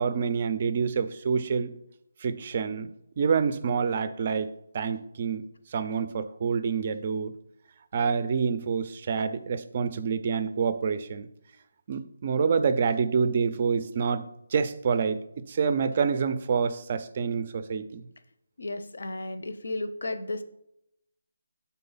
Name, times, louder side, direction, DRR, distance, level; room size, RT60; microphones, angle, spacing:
voice 1, 0.0-1.7 2.2-2.9 3.2-4.5 4.7-5.4 5.7-7.3 7.9-11.3 11.9-14.2 14.5-15.2 15.5-18.1, right 6 dB, 30° right, 12 dB, 0.4 m, -27 dB
voice 2, 18.6-20.4, left 2 dB, 75° left, 10 dB, 0.7 m, -33 dB
5.5 x 4.1 x 5.5 m, 0.82 s
hypercardioid pair, 170°, 0 cm